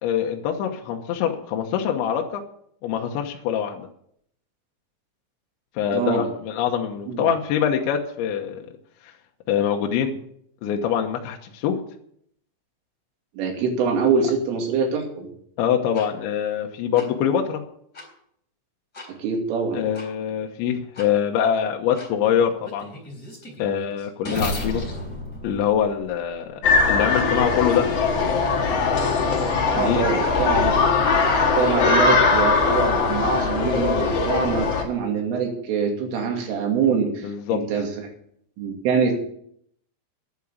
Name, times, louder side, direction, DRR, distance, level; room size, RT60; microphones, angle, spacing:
voice 1, 0.0-2.4 2.8-3.9 5.8-8.7 9.5-10.1 10.6-11.8 15.6-17.6 19.7-22.9 23.6-24.8 25.4-26.6 26.9-28.0 29.7-30.0 37.2-37.6, left 8 dB, 75° left, 2 dB, 3.3 m, -24 dB
voice 2, 5.9-6.3 7.1-7.3 13.3-15.3 19.1-19.8 29.7-30.7 31.6-38.1 38.6-39.1, right 5 dB, 80° right, 2 dB, 5.1 m, -24 dB
sound 1, 15.9-16.1 16.9-17.1 17.9-18.1 18.9-19.1 19.9-20.1 20.9-21.1 21.9-22.1 22.6-26.5, left 1 dB, 20° left, 3.6 m, -33 dB
sound 2, 26.6-34.8, left 4 dB, 45° left, 2.1 m, -20 dB
11.0 x 9.1 x 8.6 m, 0.69 s
omnidirectional pair, 5.7 m